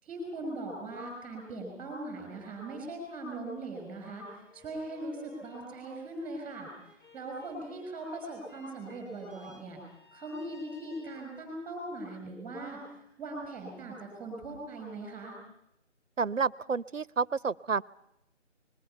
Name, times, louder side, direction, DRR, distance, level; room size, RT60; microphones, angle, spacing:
voice 1, 0.0-6.7 7.1-9.8 10.1-15.4, right 2 dB, 5° right, 2 dB, 5.7 m, -40 dB
sound 1, 3.5-11.7, left 2 dB, 40° left, 6.6 m, -58 dB
voice 2, 16.2-17.8, right 5 dB, 80° right, 22 dB, 0.9 m, -30 dB
28.5 x 21.5 x 5.7 m, 0.81 s
figure-of-eight pair, 155°, 38 cm